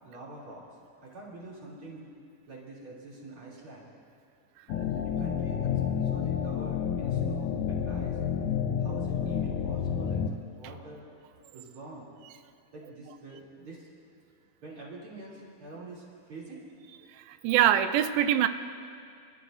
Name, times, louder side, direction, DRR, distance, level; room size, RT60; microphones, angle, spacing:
voice 1, 0.0-0.6 1.0-2.1 2.5-3.9 5.0-8.2 8.8-11.0 11.5-12.1 12.7-13.9 14.6-16.6, right 2 dB, 40° right, -6 dB, 3.6 m, -46 dB
sound 1, 4.7-10.3, left 7 dB, 80° left, 1.9 m, -29 dB
voice 2, 17.3-18.5, right 11 dB, 85° right, 10 dB, 2.4 m, -23 dB
27.5 x 12.5 x 2.6 m, 2.4 s
omnidirectional pair, 4.1 m